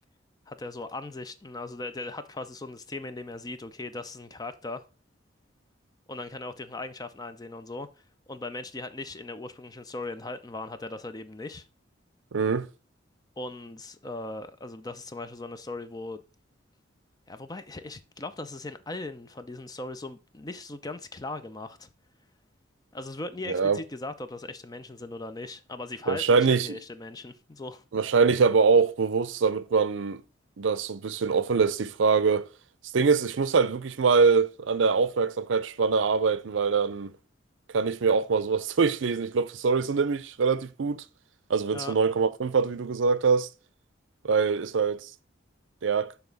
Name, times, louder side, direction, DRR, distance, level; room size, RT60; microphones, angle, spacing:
voice 1, 0.5-4.8 6.1-7.9 8.3-11.7 13.4-16.2 17.3-21.9 22.9-27.8 41.7-42.0, left 2 dB, 20° left, 0.5 m, -38 dB
voice 2, 12.3-12.7 23.5-23.8 26.1-26.8 27.9-30.2 30.6-32.5 32.9-37.1 37.7-41.0 41.5-43.5 44.2-45.1 45.8-46.1, right 5 dB, 75° right, 0.5 m, -24 dB
6.9 x 3.5 x 5.2 m
head